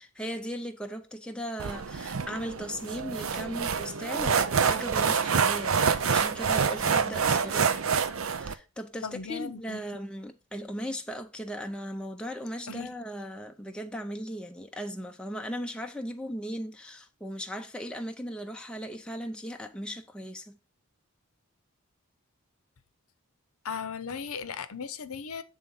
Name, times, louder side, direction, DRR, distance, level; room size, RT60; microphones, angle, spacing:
voice 1, 0.0-7.9 8.3-20.6, equal, 5° left, 0.6 m, -37 dB
sound 1, 1.6-8.5, right 6 dB, 65° right, 0.6 m, -27 dB
voice 2, 9.0-9.8 12.7-12.9 23.6-25.4, left 6 dB, 80° left, 0.7 m, -37 dB
8.5 x 3.6 x 5.4 m
head